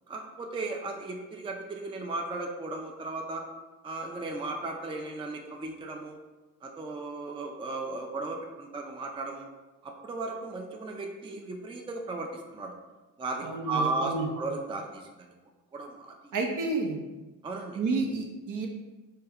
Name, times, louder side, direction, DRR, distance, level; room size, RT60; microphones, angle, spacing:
voice 1, 0.1-3.4 3.8-6.2 6.6-9.5 9.8-12.7 13.2-15.3 15.7-16.3 17.4-17.8, right 3 dB, 15° right, 2 dB, 0.3 m, -35 dB
voice 2, 13.4-14.3 16.3-17.0 17.8-18.7, right 3 dB, 60° right, 1 dB, 0.7 m, -30 dB
3.4 x 2.2 x 3.4 m, 1.2 s
cardioid pair, 70°, 35 cm